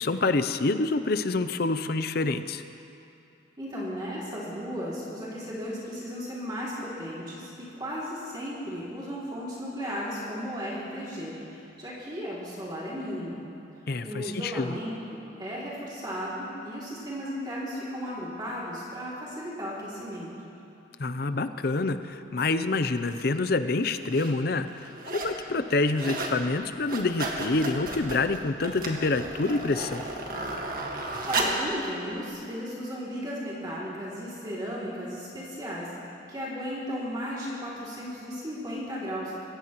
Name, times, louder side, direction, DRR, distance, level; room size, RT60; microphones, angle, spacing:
voice 1, 0.0-2.6 13.9-14.8 21.0-30.0, left 3 dB, 55° left, 11 dB, 0.6 m, -27 dB
voice 2, 3.6-7.5 7.8-13.4 14.0-20.3 31.2-35.9 36.3-39.3, equal, 25° right, -7 dB, 2.8 m, -35 dB
sound 1, 23.1-23.2 23.9-24.3 24.7-25.4 25.7-26.4 26.7-31.7 32.3-32.4, right 2 dB, 45° right, 1.7 m, -33 dB
26.0 x 15.5 x 3.1 m, 2.8 s
head